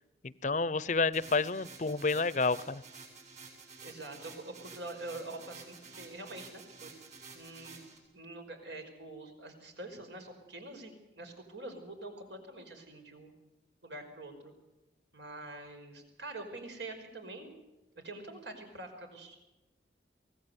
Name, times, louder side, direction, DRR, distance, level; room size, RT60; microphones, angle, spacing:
voice 1, 0.4-2.8, left 4 dB, 40° left, 18 dB, 0.7 m, -29 dB
sound 1, 1.1-8.0, right 4 dB, 40° right, 7.6 m, -51 dB
voice 2, 3.8-6.9 7.3-7.9 8.1-13.3 13.8-14.5 15.1-17.5 17.9-19.4, right 2 dB, 75° right, 5 dB, 5.3 m, -45 dB
24.0 x 17.5 x 8.2 m, 1.0 s
head